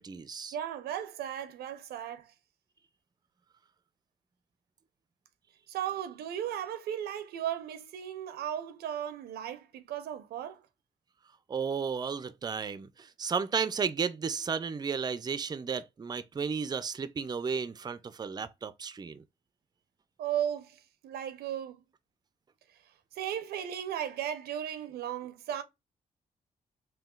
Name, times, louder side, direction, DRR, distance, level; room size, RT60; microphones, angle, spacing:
voice 1, 0.0-0.6 11.5-19.2, right 6 dB, 25° right, 0.4 m, -33 dB
voice 2, 0.5-2.3 5.7-10.6 20.2-21.8 23.2-25.6, right 10 dB, 90° right, 0.5 m, -36 dB
3.6 x 2.3 x 2.3 m
cardioid pair, 65°, 16 cm